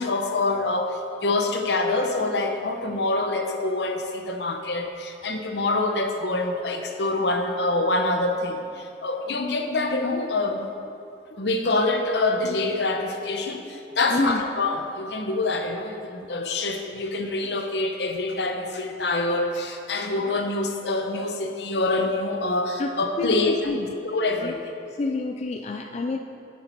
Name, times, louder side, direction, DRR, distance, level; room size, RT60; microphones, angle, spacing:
voice 1, 0.0-10.7 11.3-23.7 24.0-24.6, left 2 dB, 70° left, 5 dB, 0.9 m, -26 dB
voice 2, 14.1-14.4 22.8-23.9 24.4-24.5 25.0-26.2, left 2 dB, 40° left, 5 dB, 0.4 m, -27 dB
10.0 x 8.5 x 4.5 m, 2.7 s
head